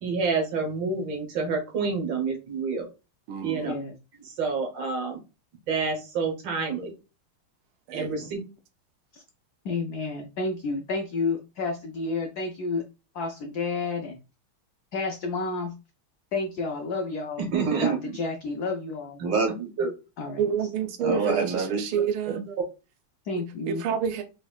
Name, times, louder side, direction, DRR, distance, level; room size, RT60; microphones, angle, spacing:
voice 1, 0.0-2.9 3.4-3.7 4.2-5.2 5.7-6.9 7.9-8.4 17.4-18.2 19.2-19.9 21.0-22.6, right 4 dB, 65° right, 1.7 m, -28 dB
voice 2, 3.3-3.7 7.9-8.3 20.4-22.4 23.3-24.2, right 7 dB, 85° right, 1.6 m, -29 dB
voice 3, 9.6-12.8 13.1-14.2 14.9-15.7 16.3-17.5 17.8-19.2 20.2-20.5 23.2-23.8, left 3 dB, 80° left, 0.8 m, -30 dB
4.1 x 3.8 x 2.3 m
omnidirectional pair, 2.3 m